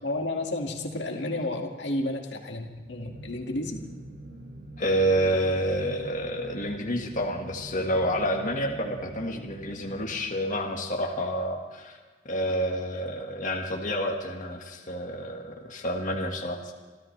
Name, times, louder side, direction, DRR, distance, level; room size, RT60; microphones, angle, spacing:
voice 1, 0.0-3.8, left 1 dB, 75° left, 2 dB, 2.0 m, -31 dB
sound 1, 2.5-10.9, right 1 dB, 70° right, 6.2 m, -45 dB
voice 2, 4.8-12.0 12.2-16.6, equal, 45° left, 0 dB, 1.7 m, -29 dB
28.0 x 13.5 x 3.3 m, 1.4 s
head